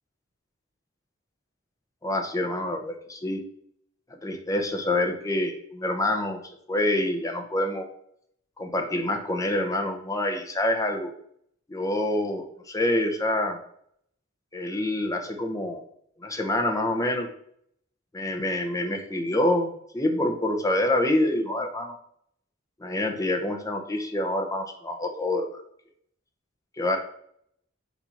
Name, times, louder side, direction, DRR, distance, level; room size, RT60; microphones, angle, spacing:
voice 1, 2.0-3.4 4.2-6.4 6.7-7.9 8.6-11.1 11.7-13.6 14.5-15.8 16.2-17.3 18.1-21.9 22.8-25.6 26.8-27.0, left 1 dB, 15° left, 3 dB, 0.8 m, -26 dB
7.2 x 2.8 x 5.6 m, 0.69 s
head